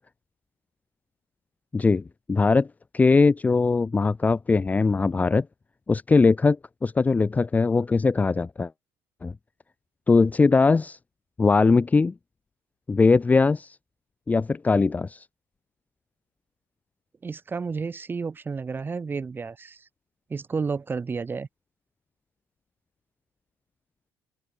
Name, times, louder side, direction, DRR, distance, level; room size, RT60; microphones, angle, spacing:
voice 1, 1.7-2.0 2.3-2.7 2.9-5.5 5.9-8.7 9.2-9.3 10.1-11.0 11.4-12.1 12.9-13.8 14.3-15.2, left 4 dB, 20° left, 0.9 m, -20 dB
voice 2, 17.2-19.8 20.3-21.5, right 5 dB, 25° right, 5.2 m, -31 dB
open air
cardioid pair, 100°, 8 cm